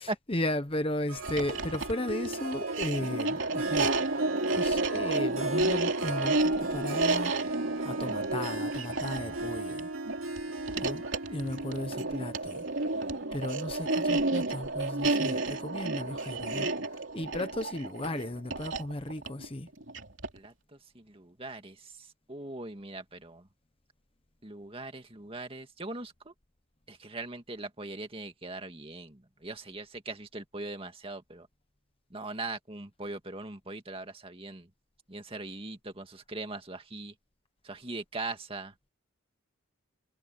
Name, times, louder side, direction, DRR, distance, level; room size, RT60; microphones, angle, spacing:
voice 1, 0.0-4.1 4.5-7.3 7.8-9.9 10.8-12.6 13.3-16.7 17.1-19.7, left 1 dB, 25° left, 1.1 m, -35 dB
Harp, 1.1-13.3, right 2 dB, 75° right, 3.1 m, -38 dB
sound 1, 1.2-20.5, right 2 dB, 60° right, 3.3 m, -31 dB
voice 2, 20.9-21.9 22.3-23.4 24.4-26.3 26.9-31.5 32.1-34.7 35.1-37.1 37.6-38.7, right 2 dB, 25° right, 2.1 m, -40 dB
head